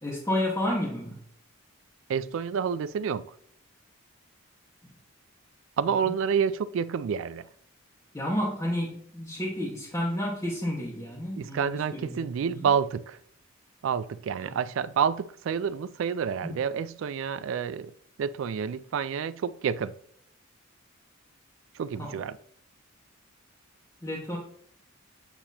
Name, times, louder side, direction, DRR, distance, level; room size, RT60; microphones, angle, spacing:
voice 1, 0.0-1.2 5.9-6.1 8.1-12.7 14.4-14.5 16.4-16.6 22.0-22.2 24.0-24.4, left 1 dB, 15° left, 1.1 m, -31 dB
voice 2, 2.1-3.3 5.8-7.4 11.4-13.2 13.8-17.9 18.2-19.9 21.8-22.4, right 7 dB, 65° right, 0.3 m, -29 dB
8.4 x 2.9 x 4.1 m
head